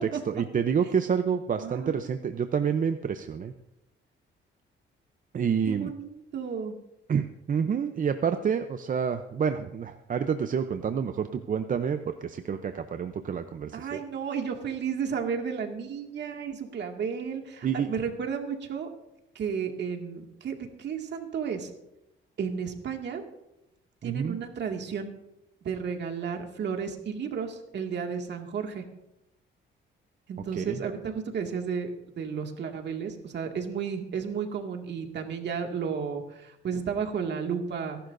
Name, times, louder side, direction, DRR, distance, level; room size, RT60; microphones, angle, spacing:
voice 1, 0.3-3.5 5.3-5.9 7.1-14.0 17.6-17.9 24.0-24.4 30.5-30.8, right 7 dB, 45° right, 8 dB, 0.7 m, -28 dB
voice 2, 1.6-2.2 5.7-6.8 13.7-18.9 19.4-21.7 22.4-23.2 24.0-25.1 25.6-28.9 30.3-38.0, right 6 dB, 60° right, 3 dB, 2.1 m, -33 dB
25.5 x 11.5 x 2.6 m, 0.88 s
cardioid pair, 90°, 20 cm